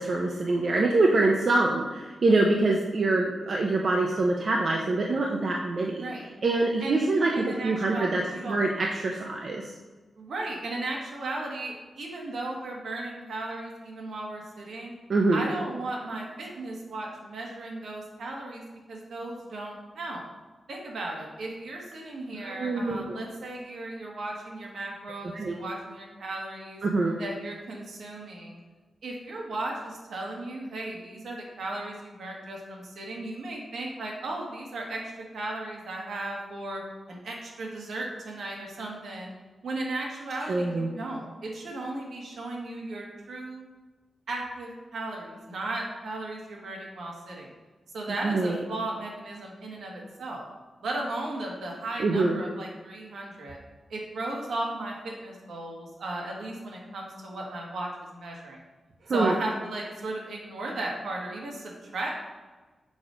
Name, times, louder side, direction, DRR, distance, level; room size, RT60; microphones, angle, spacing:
voice 1, 0.0-6.0 6.4-9.7 15.1-15.5 22.4-23.2 25.3-25.6 26.8-27.2 40.5-40.9 48.2-48.6 52.0-52.4 59.1-59.3, right 2 dB, 50° right, 0 dB, 0.5 m, -25 dB
voice 2, 7.3-8.6 10.2-14.9 15.3-20.2 20.7-26.8 27.2-28.6 29.0-36.8 37.1-39.3 39.6-43.6 44.3-47.5 47.9-50.5 50.8-53.6 53.9-58.6 59.1-62.2, right 2 dB, 75° right, -1 dB, 1.4 m, -36 dB
6.2 x 4.9 x 3.8 m, 1.3 s
wide cardioid pair, 155°, 0 cm